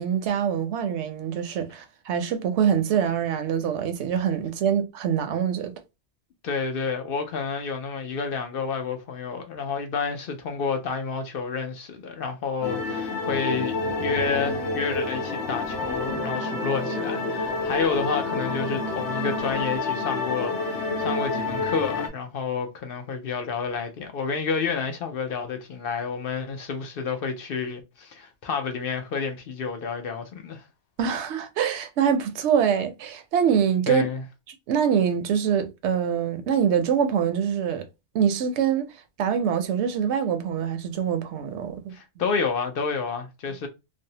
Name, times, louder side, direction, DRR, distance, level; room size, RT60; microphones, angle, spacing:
voice 1, 0.0-5.7 31.0-34.0 34.7-37.8 38.1-38.9 39.2-41.9, right 8 dB, 85° right, 0.9 m, -24 dB
voice 2, 6.4-30.6 33.9-34.2 41.9-43.7, left 5 dB, 65° left, 0.7 m, -30 dB
sound 1, 12.6-22.1, left 3 dB, 90° left, 1.0 m, -28 dB
2.6 x 2.0 x 2.7 m
omnidirectional pair, 1.1 m